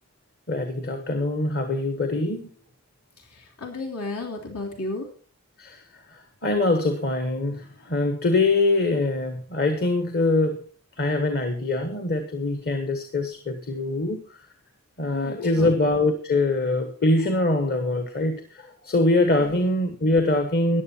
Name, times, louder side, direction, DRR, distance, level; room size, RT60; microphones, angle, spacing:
voice 1, 0.5-2.5 5.6-5.8 6.1-10.7 11.0-14.2 15.0-20.8, left 2 dB, 45° left, 7 dB, 1.3 m, -23 dB
voice 2, 3.3-5.1 15.1-15.8 19.4-19.6, left 2 dB, 80° left, 0 dB, 3.3 m, -33 dB
14.5 x 10.0 x 4.5 m, 0.41 s
head